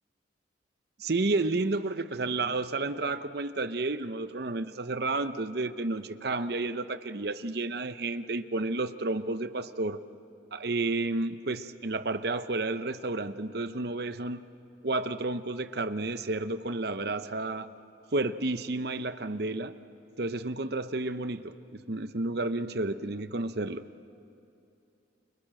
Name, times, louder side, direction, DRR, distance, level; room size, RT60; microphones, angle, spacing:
voice 1, 1.0-10.0 10.5-14.4 14.8-17.7 18.1-19.7 20.2-23.8, right 2 dB, 55° right, 11 dB, 0.8 m, -31 dB
30.0 x 23.5 x 7.7 m, 2.7 s
head